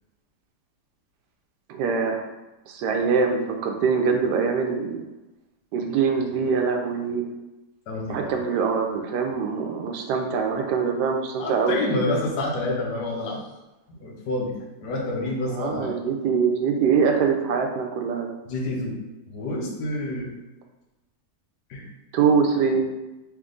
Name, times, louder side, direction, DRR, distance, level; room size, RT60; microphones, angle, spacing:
voice 1, 1.7-2.3 2.7-5.0 5.7-7.2 8.1-11.8 15.5-18.3 22.1-22.9, right 5 dB, 80° right, 4 dB, 1.2 m, -23 dB
voice 2, 7.9-8.4 11.4-13.4 14.0-15.9 18.4-19.0 19.3-20.3 21.7-21.9, left 2 dB, 75° left, -1 dB, 1.4 m, -28 dB
3.6 x 3.4 x 3.7 m, 1.0 s
omnidirectional pair, 1.8 m